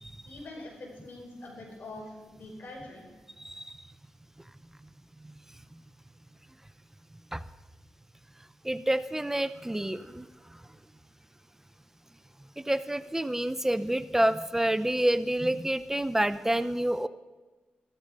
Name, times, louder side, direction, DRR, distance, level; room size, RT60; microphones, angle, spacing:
voice 1, 0.3-3.1, left 2 dB, 65° left, -1 dB, 5.5 m, -44 dB
voice 2, 3.4-3.8 7.3-7.4 8.6-10.3 12.6-17.1, right 1 dB, 10° right, 14 dB, 0.5 m, -28 dB
14.0 x 13.5 x 5.4 m, 1.3 s
cardioid pair, 75°, 3 cm